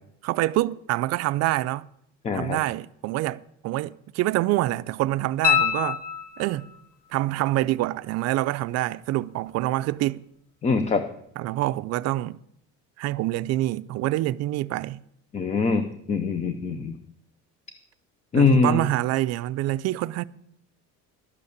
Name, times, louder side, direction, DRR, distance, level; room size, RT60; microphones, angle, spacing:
voice 1, 0.2-1.9 2.3-6.0 6.4-6.7 7.1-10.3 11.4-12.4 13.0-15.0 18.3-20.2, right 16 dB, 55° right, 0.5 m, -26 dB
voice 2, 2.2-2.6 10.6-11.0 15.3-17.0 18.3-18.8, left 4 dB, 20° left, 0.6 m, -23 dB
sound 1, 5.4-6.8 9.6-9.7, left 9 dB, 80° left, 1.1 m, -24 dB
12.0 x 8.4 x 6.7 m
cardioid pair, 155°, 31 cm